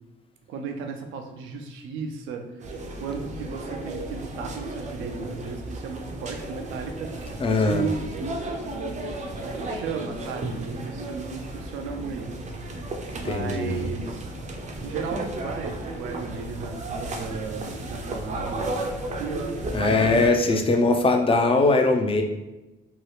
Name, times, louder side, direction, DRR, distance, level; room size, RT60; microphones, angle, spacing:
voice 1, 0.5-2.7 3.0-7.1 7.5-8.0 8.7-9.1 9.7-12.3 13.1-14.3 14.8-18.9 19.2-20.7, right 5 dB, 90° right, 4 dB, 0.5 m, -35 dB
sound 1, 2.6-20.3, right 2 dB, 40° right, 0.5 m, -34 dB
voice 2, 7.4-7.8 13.2-13.9 19.7-22.2, left 3 dB, 30° left, 4 dB, 0.5 m, -21 dB
2.8 x 2.3 x 3.2 m, 1.0 s
cardioid pair, 90°, 20 cm